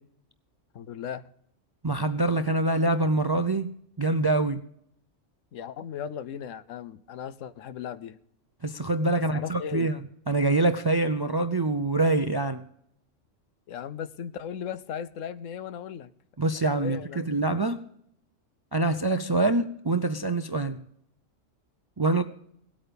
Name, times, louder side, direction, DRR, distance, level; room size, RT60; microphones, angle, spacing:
voice 1, 0.7-1.2 5.5-8.2 9.1-9.9 13.7-16.1 16.8-17.2, left 8 dB, 90° left, 1.1 m, -37 dB
voice 2, 1.8-3.7 4.0-4.6 8.6-10.0 10.3-12.6 16.4-17.8 18.7-20.8 22.0-22.2, right 2 dB, 40° right, 0.3 m, -25 dB
18.0 x 8.8 x 5.1 m
omnidirectional pair, 1.3 m